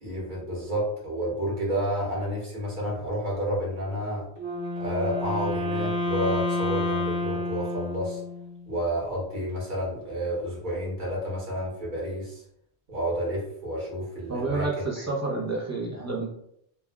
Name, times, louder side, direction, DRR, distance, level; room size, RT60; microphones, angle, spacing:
voice 1, 0.0-4.3 4.8-8.2 8.7-12.4 12.9-15.0, equal, 45° right, -5 dB, 1.2 m, -30 dB
Wind instrument woodwind instrument, 4.4-8.6, left 1 dB, 85° right, 1.1 m, -29 dB
voice 2, 14.3-16.3, right 3 dB, 25° right, -2 dB, 0.4 m, -29 dB
3.3 x 2.3 x 2.2 m, 0.72 s
omnidirectional pair, 1.2 m